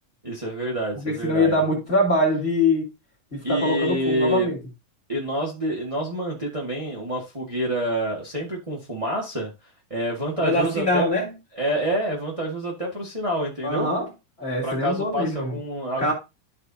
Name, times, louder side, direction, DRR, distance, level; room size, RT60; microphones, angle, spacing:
voice 1, 0.2-1.6 3.4-4.5 5.1-9.5 9.9-11.1 11.5-13.9 14.6-16.1, right 1 dB, 30° right, 0.5 m, -27 dB
voice 2, 1.0-2.9 3.5-4.6 10.4-11.3 13.6-14.1 14.4-15.6 16.0-16.1, left 2 dB, 20° left, 2.9 m, -23 dB
13.0 x 4.6 x 2.7 m
omnidirectional pair, 4.0 m